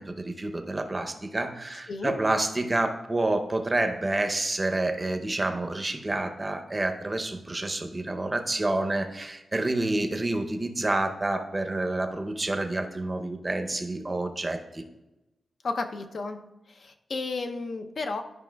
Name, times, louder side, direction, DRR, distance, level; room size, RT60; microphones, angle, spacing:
voice 1, 0.0-14.8, right 2 dB, 20° right, 6 dB, 0.6 m, -28 dB
voice 2, 15.6-16.4 16.7-18.2, left 3 dB, 60° left, 6 dB, 0.5 m, -32 dB
11.5 x 5.4 x 2.2 m, 0.99 s
wide cardioid pair, 130°, 0 cm